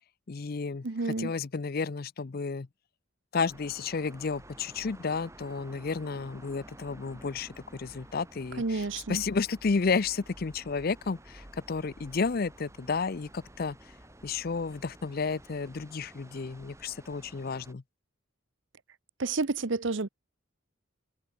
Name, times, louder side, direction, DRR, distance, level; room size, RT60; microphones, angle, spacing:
voice 1, 0.3-2.7 3.3-13.8 14.2-17.8, left 4 dB, 45° left, 0.5 m, -32 dB
voice 2, 0.8-1.3 8.6-9.2 19.2-20.1, right 3 dB, 60° right, 0.9 m, -30 dB
sound 1, 3.3-17.7, right 1 dB, 15° right, 3.1 m, -52 dB
head